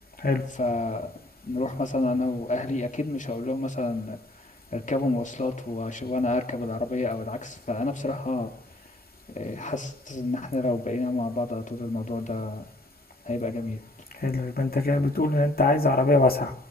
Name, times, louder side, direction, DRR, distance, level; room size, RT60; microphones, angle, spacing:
voice 1, 0.5-1.1 1.4-8.5 9.3-12.7 13.2-13.8, left 2 dB, 50° left, 4 dB, 3.0 m, -29 dB
voice 2, 14.2-16.5, left 2 dB, 70° left, 2 dB, 3.1 m, -22 dB
27.5 x 20.5 x 7.9 m, 0.62 s
wide cardioid pair, 55°, 16 cm